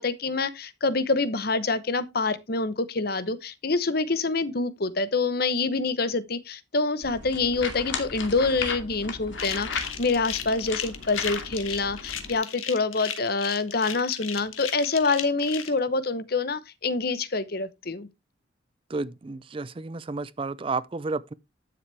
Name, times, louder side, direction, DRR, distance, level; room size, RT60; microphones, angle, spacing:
voice 1, 0.0-18.1, left 3 dB, 50° left, 0.9 m, -26 dB
sound 1, 7.0-12.3, left 4 dB, 70° left, 2.3 m, -35 dB
sound 2, 9.3-15.7, left 9 dB, 90° left, 1.6 m, -36 dB
voice 2, 18.9-21.3, right 3 dB, 25° right, 0.4 m, -31 dB
12.0 x 7.2 x 3.3 m
head